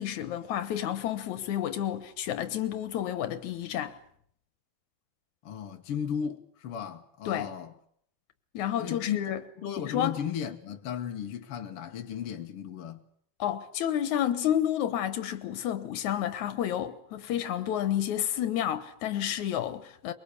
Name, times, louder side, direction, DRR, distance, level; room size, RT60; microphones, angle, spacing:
voice 1, 0.0-4.0 7.3-7.5 8.5-9.4 9.8-10.2 13.4-20.1, left 10 dB, 85° left, 2.6 m, -30 dB
voice 2, 5.4-7.7 8.8-9.2 9.6-13.0, left 8 dB, 55° left, 2.0 m, -35 dB
23.5 x 23.0 x 8.4 m
omnidirectional pair, 3.3 m